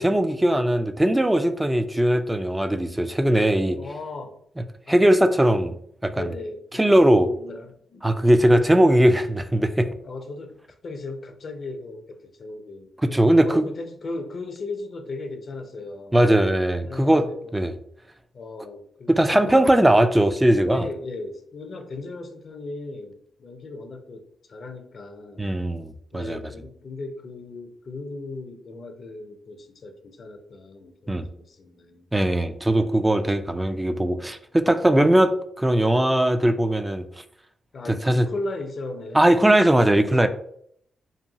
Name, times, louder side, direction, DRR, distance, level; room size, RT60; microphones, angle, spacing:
voice 1, 0.0-3.8 4.9-5.7 6.0-6.3 6.7-7.3 8.0-9.9 13.1-13.6 16.1-17.2 17.5-17.7 19.1-20.8 25.4-26.4 31.1-31.3 32.1-37.0 38.1-38.3 39.1-40.3, right 1 dB, 15° right, 0.3 m, -19 dB
voice 2, 3.8-4.3 4.9-5.1 6.1-6.9 7.2-8.6 10.0-10.5 10.8-16.2 16.8-17.5 18.3-19.2 19.4-19.7 20.7-25.5 26.1-32.1 37.7-39.5 40.0-40.3, left 2 dB, 60° left, 0.4 m, -37 dB
2.7 x 2.2 x 2.7 m
supercardioid pair, 55°, 0 cm